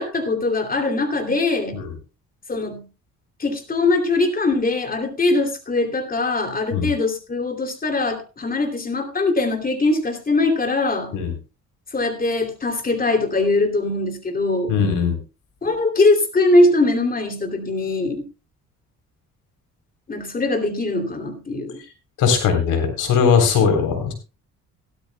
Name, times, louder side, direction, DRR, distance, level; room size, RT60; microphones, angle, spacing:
voice 1, 0.0-1.8 2.5-2.8 3.4-11.2 11.9-14.7 15.6-18.2 20.1-21.8, left 2 dB, 30° left, 2.8 m, -21 dB
voice 2, 14.7-15.1 22.2-24.1, left 6 dB, 85° left, 3.7 m, -19 dB
16.5 x 12.5 x 2.2 m
cardioid pair, 90°, 30 cm